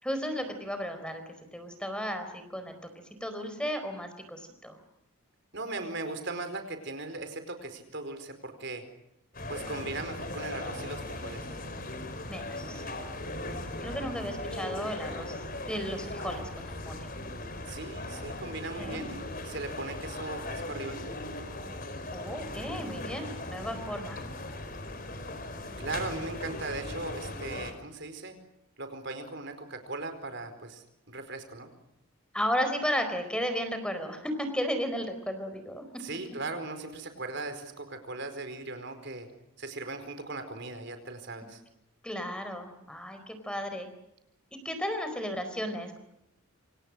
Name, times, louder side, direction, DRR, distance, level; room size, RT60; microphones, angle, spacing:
voice 1, 0.0-1.2 1.5-2.8 3.2-4.8 12.3-12.8 13.8-15.4 15.7-17.1 18.8-19.0 22.1-24.2 32.3-35.8 42.0-43.9 44.5-46.0, equal, 5° left, 8 dB, 4.4 m, -34 dB
voice 2, 5.5-8.8 9.5-11.5 17.7-21.0 25.8-28.4 28.8-31.7 36.0-39.3 39.6-41.6, right 3 dB, 50° right, 8 dB, 4.7 m, -38 dB
sound 1, 9.3-27.7, left 1 dB, 40° left, 4.6 m, -38 dB
28.0 x 27.5 x 6.4 m, 0.86 s
head